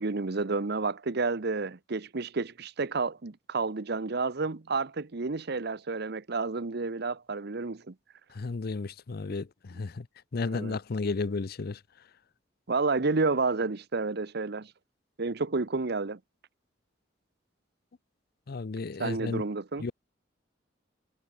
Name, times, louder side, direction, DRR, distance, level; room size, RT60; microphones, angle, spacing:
voice 1, 0.0-7.9 10.5-10.8 12.7-14.7 15.2-16.2 19.0-19.9, right 3 dB, 60° right, 0.9 m, -30 dB
voice 2, 8.3-10.1 10.3-11.8 18.5-19.4 19.8-19.9, left 3 dB, 55° left, 0.6 m, -33 dB
head